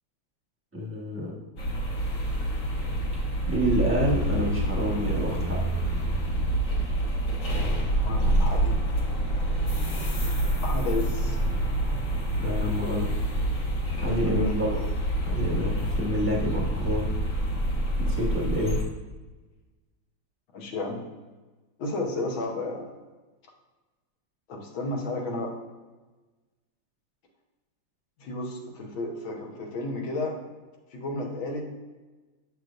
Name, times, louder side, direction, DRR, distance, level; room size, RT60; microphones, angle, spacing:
voice 1, 0.7-1.3 3.5-5.6 12.4-13.1 14.0-14.8 15.2-17.1 18.0-18.8, equal, 10° right, -5 dB, 1.0 m, -28 dB
sound 1, 1.6-18.8, right 1 dB, 45° left, 1.4 m, -27 dB
voice 2, 7.7-8.8 10.6-11.4 14.2-14.6 20.5-21.0 21.8-22.8 24.5-25.5 28.2-30.4 30.9-31.6, left 2 dB, 75° left, 1 dB, 1.8 m, -32 dB
7.6 x 6.1 x 2.5 m, 1.2 s
omnidirectional pair, 2.2 m